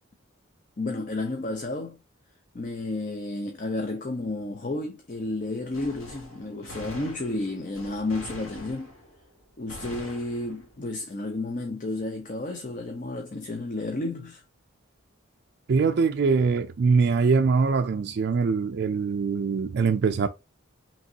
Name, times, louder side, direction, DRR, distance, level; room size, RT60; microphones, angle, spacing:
voice 1, 0.8-2.0 2.5-8.9 9.6-14.4, left 2 dB, 40° left, 0.6 m, -32 dB
Gunshot gunfire, 5.7-9.3 9.7-10.8, equal, 90° left, 1.7 m, -43 dB
voice 2, 15.7-20.3, right 5 dB, 50° right, 0.3 m, -23 dB
5.3 x 2.9 x 2.7 m
head